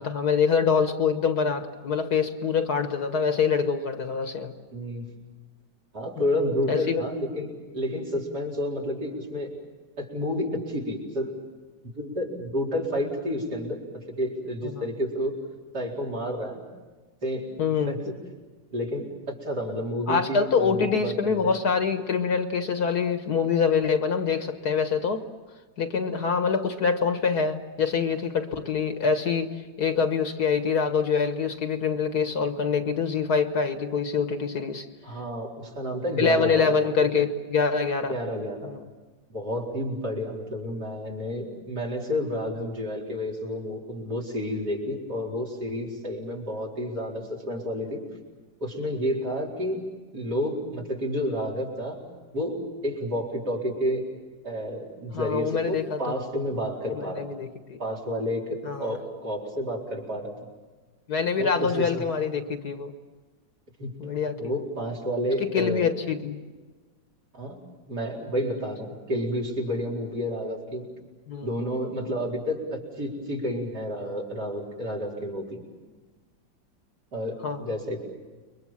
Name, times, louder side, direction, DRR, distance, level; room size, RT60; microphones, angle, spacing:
voice 1, 0.0-4.5 6.2-7.0 14.6-14.8 17.6-18.0 20.1-25.3 25.8-34.9 36.2-38.2 38.6-38.9 55.1-56.0 56.9-57.8 58.6-59.0 61.1-62.9 64.0-64.5 65.5-66.4 71.3-71.5 77.4-77.7, left 5 dB, 55° left, 8 dB, 1.8 m, -25 dB
voice 2, 4.7-5.1 5.9-9.5 10.0-11.4 11.9-15.3 15.7-16.6 17.2-17.5 17.8-18.1 18.7-21.5 35.0-36.8 38.1-38.7 39.3-48.0 48.6-49.9 50.1-52.0 52.3-54.0 54.4-57.3 57.8-60.5 61.4-62.0 63.8-64.0 64.4-65.9 67.3-67.6 67.9-70.9 71.4-75.6 77.1-78.0, equal, 55° right, 2 dB, 5.0 m, -30 dB
29.5 x 23.0 x 7.4 m, 1.3 s
omnidirectional pair, 2.0 m